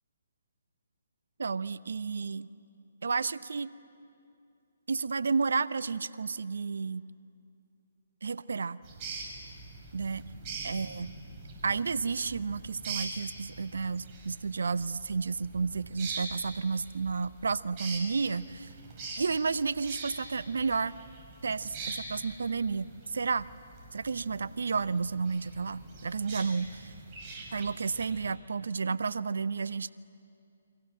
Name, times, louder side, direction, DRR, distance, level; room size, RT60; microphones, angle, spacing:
voice 1, 1.4-2.5 3.0-3.8 4.9-7.0 8.2-8.8 9.9-10.2 10.6-11.2 11.6-18.7 19.2-20.9 21.4-23.5 23.9-26.7 27.5-29.9, right 5 dB, 70° right, 18 dB, 0.7 m, -31 dB
sound 1, 8.8-28.3, right 3 dB, 30° right, 5.5 m, -44 dB
29.5 x 23.5 x 7.8 m, 2.5 s
figure-of-eight pair, 140°, 0 cm